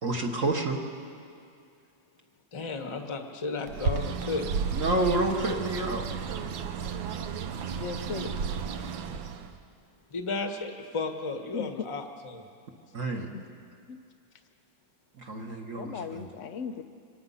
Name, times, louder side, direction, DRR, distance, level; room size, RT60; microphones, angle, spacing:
voice 1, 0.0-0.8 4.7-6.1 12.9-13.3 15.2-16.3, right 2 dB, 45° right, 2 dB, 1.5 m, -29 dB
voice 2, 2.5-4.5 10.1-12.4, left 3 dB, 20° left, 5 dB, 1.0 m, -33 dB
Bird, 3.7-9.6, right 6 dB, 75° right, 1.6 m, -33 dB
voice 3, 7.8-8.3 11.5-11.7 13.3-13.4 13.9-14.0 15.8-16.8, left 6 dB, 65° left, 9 dB, 0.7 m, -37 dB
25.0 x 19.0 x 5.6 m, 2.3 s
omnidirectional pair, 2.2 m